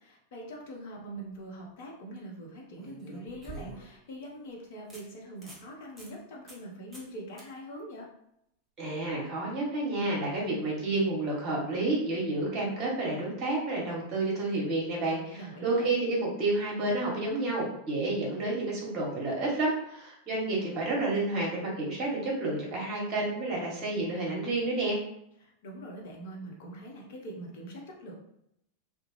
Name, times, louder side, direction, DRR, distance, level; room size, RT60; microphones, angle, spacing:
voice 1, 0.0-8.1 15.3-15.9 25.4-28.1, right 1 dB, 50° left, -1 dB, 0.7 m, -43 dB
sound 1, 1.2-1.4 2.8-4.1 4.5-4.6 4.9-5.0 5.4-5.6 6.0-6.1 6.5-6.7 6.9-7.1 7.4-7.5 10.6-10.7, right 2 dB, 10° right, 0.9 m, -47 dB
voice 2, 8.8-25.0, right 2 dB, 35° right, -3 dB, 1.1 m, -30 dB
2.4 x 2.1 x 3.2 m, 0.77 s
figure-of-eight pair, 90°, 0 cm